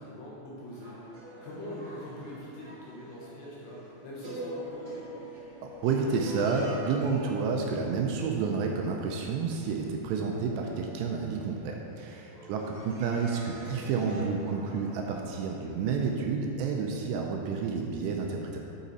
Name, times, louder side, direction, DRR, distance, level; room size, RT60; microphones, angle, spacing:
voice 1, 0.0-5.1 12.3-13.1, left 1 dB, 70° left, -6 dB, 2.6 m, -43 dB
sound 1, 0.7-12.3 12.7-16.1, right 1 dB, 55° right, 2.6 m, -44 dB
voice 2, 5.6-18.6, right 5 dB, 85° right, 1 dB, 2.6 m, -30 dB
8.4 x 5.0 x 4.0 m, 2.8 s
omnidirectional pair, 5.2 m